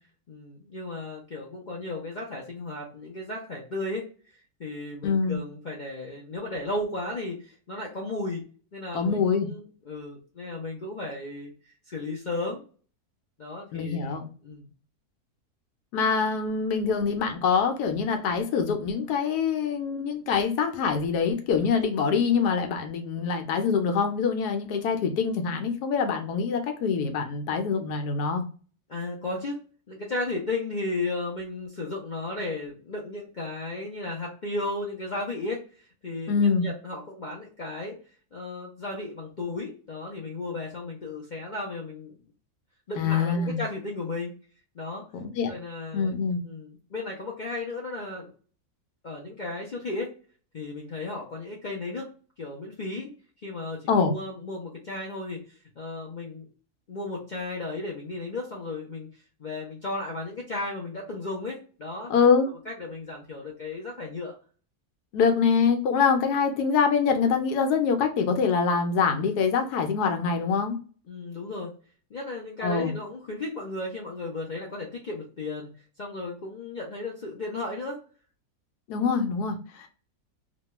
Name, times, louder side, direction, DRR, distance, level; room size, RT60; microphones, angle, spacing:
voice 1, 0.3-4.1 4.6-8.4 8.7-12.6 13.4-14.2 14.4-14.7 28.9-29.6 29.9-38.0 38.3-42.2 42.9-44.3 44.7-45.0 45.5-46.1 46.4-48.3 49.0-50.1 50.5-52.1 52.4-53.1 53.4-55.4 55.8-56.5 56.9-59.1 59.4-62.1 62.4-64.3 71.1-71.7 72.1-75.7 76.0-78.0, left 2 dB, 55° left, -2 dB, 0.5 m, -34 dB
voice 2, 5.0-5.4 8.9-9.5 13.7-14.2 15.9-28.4 36.3-36.7 43.0-43.6 45.1-45.5 45.9-46.4 53.9-54.1 62.1-62.5 65.1-70.8 72.6-72.9 78.9-79.9, left 5 dB, 85° left, 5 dB, 1.2 m, -24 dB
3.1 x 2.2 x 2.9 m, 0.39 s
omnidirectional pair, 1.6 m